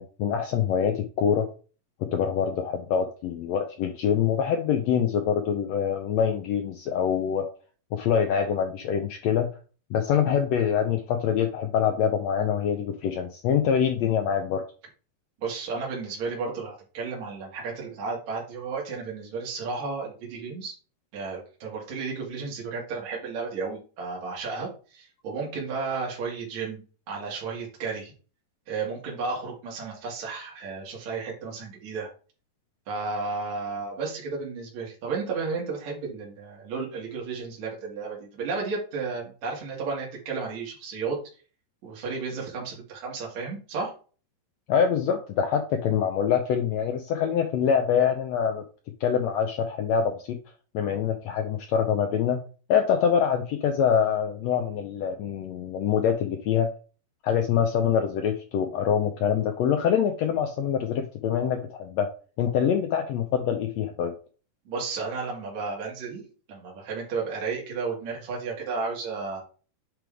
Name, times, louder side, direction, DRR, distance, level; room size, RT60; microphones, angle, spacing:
voice 1, 0.0-1.5 2.1-7.5 7.9-9.5 9.9-14.6 44.7-48.6 49.0-50.4 50.7-52.4 52.7-56.7 57.2-62.1 62.4-64.1, left 8 dB, 90° left, 5 dB, 1.5 m, -25 dB
voice 2, 15.4-20.7 21.1-28.1 28.7-32.1 32.9-41.2 41.8-43.9 64.7-66.2 66.5-69.4, right 4 dB, 55° right, -3 dB, 3.3 m, -33 dB
9.4 x 3.5 x 3.5 m, 0.36 s
omnidirectional pair, 3.9 m